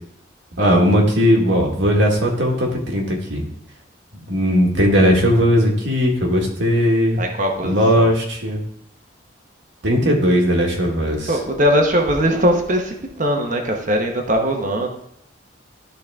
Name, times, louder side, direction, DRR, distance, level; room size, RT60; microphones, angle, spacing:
voice 1, 0.6-3.4 4.3-7.2 7.6-8.6 9.8-11.4, equal, 70° right, 0 dB, 1.8 m, -17 dB
voice 2, 7.2-8.1 11.3-14.9, equal, 40° right, 3 dB, 1.0 m, -20 dB
12.5 x 4.1 x 3.6 m, 0.73 s
head